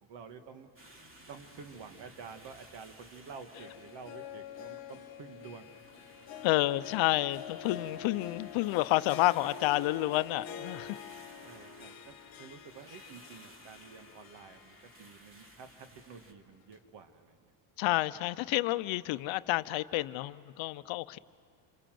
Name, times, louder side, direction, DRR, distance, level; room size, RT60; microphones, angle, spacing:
voice 1, 0.0-0.7 1.3-5.7 6.2-6.3 7.6-7.7 11.4-17.5 17.9-18.0, right 5 dB, 60° right, 8 dB, 2.0 m, -50 dB
sound 1, 0.8-16.3, right 1 dB, 25° right, 2.6 m, -57 dB
Harp, 3.3-15.4 15.8-15.9 16.7-16.8, left 8 dB, 50° left, 1.6 m, -47 dB
voice 2, 6.4-11.0 17.8-21.2, left 18 dB, 70° left, 14 dB, 0.7 m, -30 dB
27.0 x 25.0 x 7.7 m, 2.2 s
cardioid pair, 120°, 47 cm